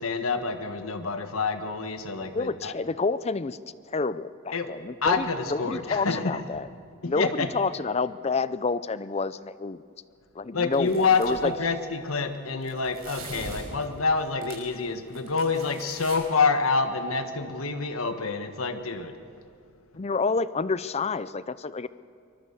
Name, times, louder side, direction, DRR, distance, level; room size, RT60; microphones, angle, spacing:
voice 1, 0.0-2.7 4.5-4.7 5.0-6.4 7.0-7.5 10.5-19.2, left 4 dB, 80° left, 7 dB, 1.5 m, -27 dB
voice 2, 2.3-3.6 3.9-6.7 7.0-9.8 10.4-11.5 20.0-21.9, left 4 dB, 30° left, 16 dB, 0.5 m, -29 dB
sound 1, 10.7-11.5 12.6-14.7 15.1-16.2, right 3 dB, 85° right, 6.1 m, -42 dB
24.0 x 20.5 x 7.1 m, 2.3 s
head